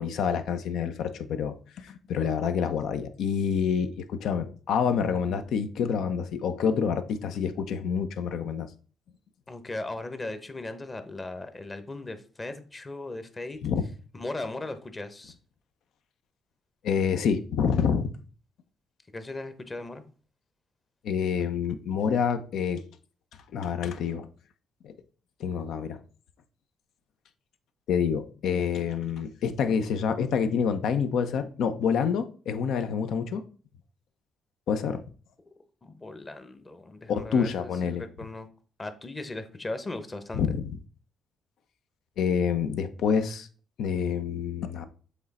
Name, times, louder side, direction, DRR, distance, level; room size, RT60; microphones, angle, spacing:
voice 1, 0.0-8.7 13.6-13.8 16.8-18.1 21.0-22.8 23.5-24.3 24.8-24.9 25.4-26.0 27.9-33.4 34.7-35.0 37.1-38.0 40.3-40.6 42.2-43.5 43.8-44.9, left 7 dB, 75° left, 0.7 m, -27 dB
voice 2, 9.5-13.6 14.1-15.4 19.1-20.0 35.8-38.5 38.8-40.4, left 2 dB, 25° left, 0.9 m, -37 dB
7.2 x 3.3 x 4.1 m
cardioid pair, 90°, 0 cm